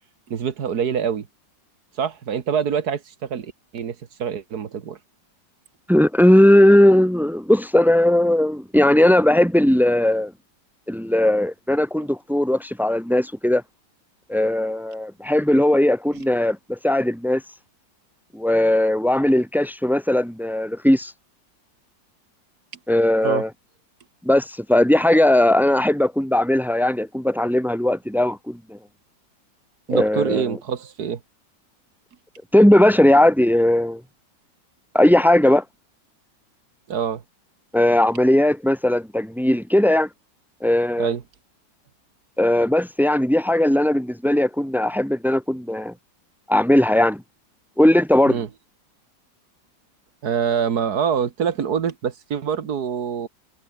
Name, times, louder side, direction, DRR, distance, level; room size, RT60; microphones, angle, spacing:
voice 1, 0.3-1.3 2.0-5.0 16.1-16.2 23.2-23.4 29.9-31.2 36.9-37.2 41.0-41.2 48.3-48.5 50.2-53.3, right 7 dB, 60° right, 1.9 m, -25 dB
voice 2, 5.9-10.3 10.9-13.6 14.3-17.4 18.3-21.1 22.9-23.5 24.2-28.8 29.9-30.4 32.5-34.0 34.9-35.6 37.7-40.1 40.6-41.1 42.4-45.9 46.5-47.2 47.8-48.4, left 1 dB, ahead, 0.5 m, -18 dB
omnidirectional pair, 2.0 m